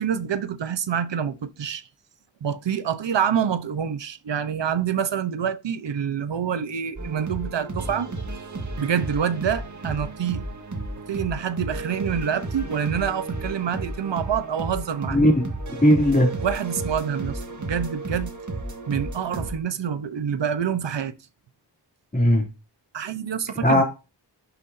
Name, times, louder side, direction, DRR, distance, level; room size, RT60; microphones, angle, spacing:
voice 1, 0.0-1.8 2.4-8.1 8.8-10.4 11.1-15.2 16.4-18.3 18.9-21.1 22.9-23.8, right 8 dB, 90° right, 1.0 m, -27 dB
sound 1, 7.0-19.5, right 2 dB, 45° right, 1.8 m, -33 dB
voice 2, 15.1-15.5 15.8-16.3 22.1-22.5 23.6-23.8, equal, 20° left, 2.9 m, -17 dB
11.5 x 6.9 x 2.7 m
wide cardioid pair, 110°, 42 cm